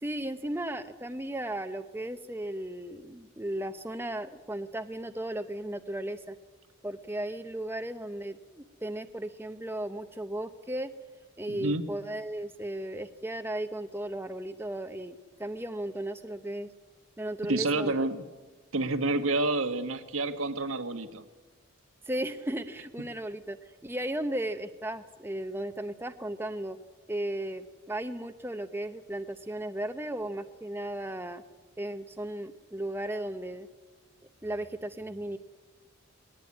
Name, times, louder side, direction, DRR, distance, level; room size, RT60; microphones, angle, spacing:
voice 1, 0.0-6.4 6.8-10.9 11.4-16.7 17.2-18.0 22.1-26.8 27.1-31.4 31.8-33.7 34.4-35.4, right 1 dB, 10° right, 8 dB, 0.7 m, -35 dB
voice 2, 11.5-11.8 17.5-18.2 18.7-21.3, right 2 dB, 80° right, 8 dB, 1.6 m, -29 dB
21.5 x 19.0 x 9.6 m, 1.3 s
head